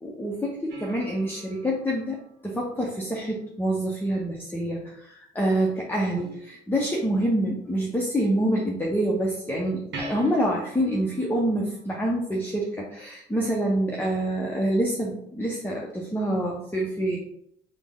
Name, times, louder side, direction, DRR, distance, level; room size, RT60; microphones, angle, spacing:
voice 1, 0.0-17.2, right 1 dB, 10° left, -2 dB, 0.6 m, -26 dB
sound 1, 0.7-3.3 6.2-7.1 9.9-12.8 15.9-16.0, right 1 dB, 65° right, 0.8 m, -44 dB
3.4 x 2.1 x 3.6 m, 0.73 s
cardioid pair, 90°, 20 cm